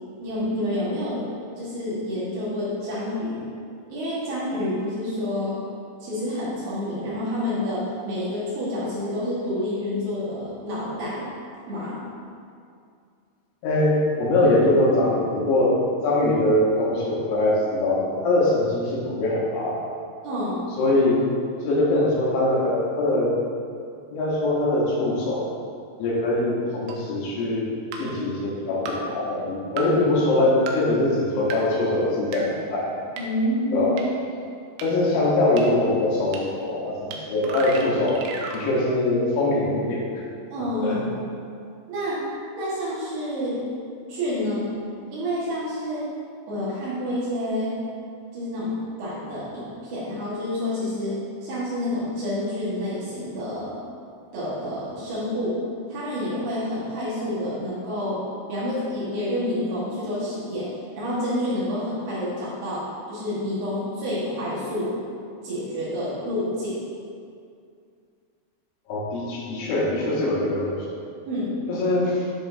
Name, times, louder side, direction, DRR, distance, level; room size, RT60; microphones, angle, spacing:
voice 1, 0.2-1.2 1.5-3.4 3.9-5.6 6.0-11.3 11.7-12.0 20.2-20.7 33.2-33.9 40.5-41.2 41.9-42.2 42.5-43.6 44.1-44.7 45.1-46.1 46.5-47.8 48.3-53.8 54.3-55.6 55.9-58.2 58.5-65.0 65.4-66.8 71.3-71.5, left 1 dB, 65° right, -10 dB, 3.1 m, -28 dB
voice 2, 13.6-15.8 16.0-19.9 20.8-21.2 21.6-23.3 24.1-25.5 26.0-27.7 28.0-32.9 33.7-34.0 34.8-38.2 38.5-40.0 40.8-41.0 68.9-70.8 71.7-72.3, left 2 dB, 80° left, -6 dB, 3.5 m, -22 dB
sound 1, 26.9-27.0 27.9-28.0 28.9-29.0 29.8-29.9 30.7-30.8 31.5-31.6 32.3-32.4 33.2-33.3 34.0-34.1 34.8-34.9 35.6-35.7 36.3-36.4 37.1-37.2 37.4-38.6, right 4 dB, 90° right, 2.4 m, -33 dB
10.0 x 3.8 x 2.6 m, 2.3 s
omnidirectional pair, 5.4 m